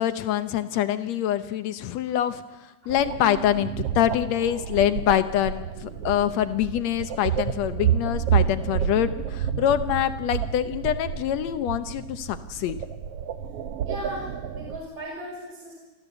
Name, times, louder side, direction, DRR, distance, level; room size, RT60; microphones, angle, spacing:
voice 1, 0.0-12.8, left 11 dB, 75° left, 11 dB, 1.6 m, -25 dB
sound 1, 2.9-14.8, right 9 dB, 65° right, 1.5 m, -29 dB
voice 2, 13.8-15.7, equal, 15° right, -2 dB, 5.0 m, -38 dB
24.5 x 14.5 x 8.2 m, 1.1 s
omnidirectional pair, 4.0 m